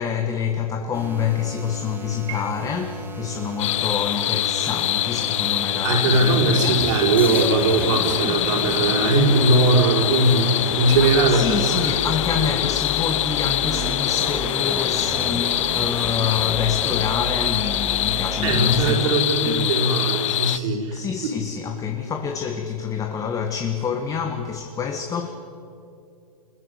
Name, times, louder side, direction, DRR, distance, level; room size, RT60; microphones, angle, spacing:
voice 1, 0.0-6.8 11.3-19.1 19.5-19.8 20.9-25.3, left 7 dB, 15° left, 1.6 m, -27 dB
sound 1, 0.9-18.9, right 1 dB, 10° right, 2.4 m, -33 dB
sound 2, 3.6-20.6, left 13 dB, 55° left, 0.9 m, -24 dB
voice 2, 5.8-11.9 12.3-12.5 18.4-21.0, right 3 dB, 55° right, 5.4 m, -20 dB
26.0 x 21.5 x 9.9 m
hypercardioid pair, 135°, 19 cm